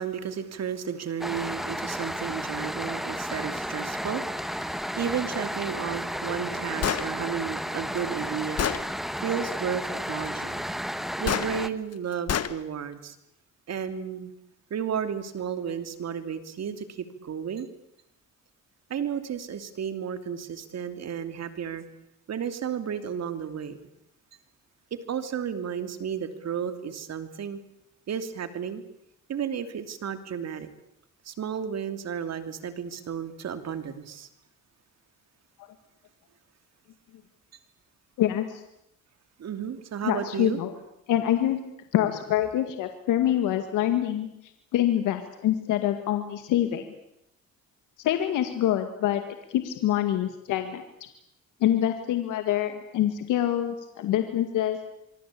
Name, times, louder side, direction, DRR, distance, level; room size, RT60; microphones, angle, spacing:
voice 1, 0.0-8.6 9.2-10.6 11.2-13.2 13.7-14.3 14.7-17.7 18.9-21.8 22.3-23.9 25.1-27.6 28.1-28.8 29.3-30.7 31.2-34.3 39.4-40.6, right 8 dB, 60° right, 10 dB, 2.8 m, -33 dB
sound 1, 1.2-11.7, equal, ahead, 1.6 m, -33 dB
Gunshot gunfire, 6.8-7.1 8.0-8.1 8.6-8.8 11.3-11.5 12.3-12.5, left 9 dB, 55° left, 1.6 m, -26 dB
voice 2, 38.2-38.6 40.0-40.7 41.1-41.6 41.9-44.3 44.7-46.8 48.0-49.2 49.5-50.8 51.6-54.8, left 12 dB, 90° left, 7 dB, 2.1 m, -25 dB
25.0 x 24.0 x 8.5 m, 0.81 s
cardioid pair, 90°, 30 cm